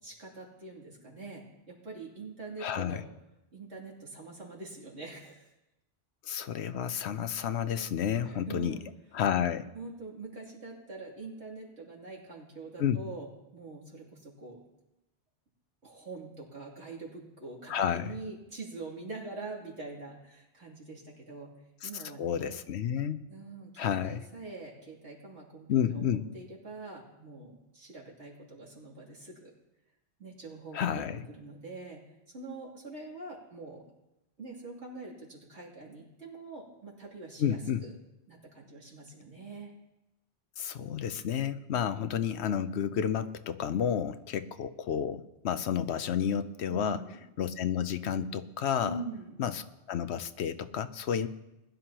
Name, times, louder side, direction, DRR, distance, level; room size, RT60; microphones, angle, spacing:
voice 1, 0.0-3.0 3.5-5.5 8.2-8.8 9.7-14.6 15.8-21.5 21.8-22.6 23.3-29.5 30.2-32.0 32.3-33.8 34.4-37.9 38.3-39.7 41.7-42.0 43.8-44.0 46.7-47.2 48.8-49.4, right 3 dB, 90° right, -4 dB, 3.3 m, -44 dB
voice 2, 2.6-3.0 6.2-8.8 9.1-9.7 12.8-13.0 17.7-18.1 21.8-23.2 23.8-24.2 25.7-26.3 30.7-31.2 37.4-37.8 40.6-47.0 47.4-49.0 49.4-49.6 49.9-51.3, left 8 dB, 80° left, 12 dB, 0.9 m, -31 dB
20.5 x 11.5 x 3.0 m, 0.94 s
omnidirectional pair, 1.1 m